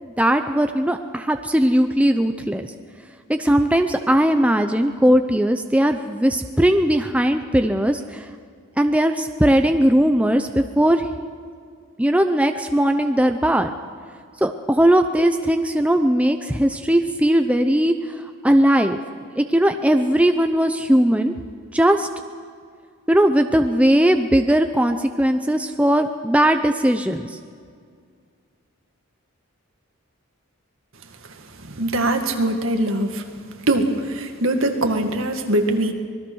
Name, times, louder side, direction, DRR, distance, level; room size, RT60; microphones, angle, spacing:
voice 1, 0.0-2.7 3.3-8.3 8.8-11.1 12.0-13.7 14.4-18.2 18.4-19.0 19.4-21.3 21.7-22.1 23.1-27.3, right 1 dB, 5° right, 6 dB, 0.6 m, -19 dB
voice 2, 31.6-33.2 33.7-35.9, right 1 dB, 65° right, 4 dB, 2.1 m, -22 dB
26.0 x 20.5 x 6.4 m, 2.1 s
head